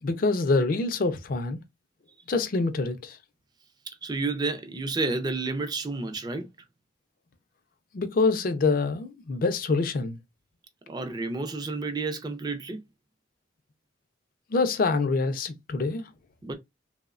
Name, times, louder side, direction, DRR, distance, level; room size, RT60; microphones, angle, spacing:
voice 1, 0.0-1.6 2.3-3.2 7.9-10.2 14.5-16.1, left 3 dB, 50° left, 0.4 m, -25 dB
voice 2, 3.9-6.5 10.9-12.8 16.4-16.5, right 3 dB, 20° right, 0.4 m, -30 dB
3.0 x 2.0 x 2.4 m
head